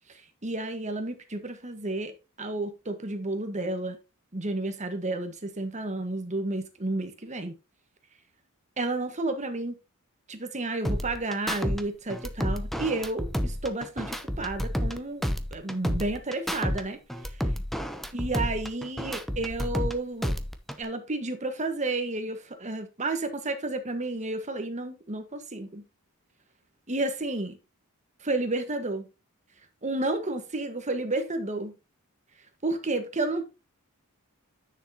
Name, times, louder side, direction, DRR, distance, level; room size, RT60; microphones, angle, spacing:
voice 1, 0.4-2.1 2.4-4.0 4.3-7.6 8.8-9.7 10.3-15.2 15.5-17.0 18.1-20.3 20.8-25.8 26.9-27.6 28.2-29.1 29.8-31.7 32.6-33.4, right 2 dB, 35° right, 1.6 m, -31 dB
sound 1, 10.8-11.8 12.1-15.0 15.2-16.8 17.1-19.9 20.2-20.8, equal, ahead, 0.7 m, -30 dB
10.0 x 6.7 x 2.9 m
head